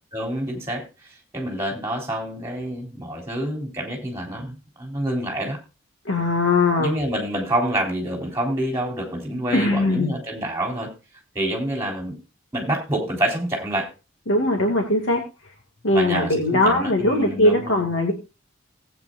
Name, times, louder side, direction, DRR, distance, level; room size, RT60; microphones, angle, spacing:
voice 1, 0.1-0.9 1.3-5.6 6.8-10.9 11.3-12.2 12.5-13.9 15.9-17.9, right 1 dB, 15° right, 1 dB, 3.8 m, -27 dB
voice 2, 6.1-6.9 9.5-10.1 14.3-15.2 15.8-18.1, left 2 dB, 70° left, 2 dB, 2.3 m, -20 dB
18.5 x 8.8 x 2.5 m, 0.28 s
head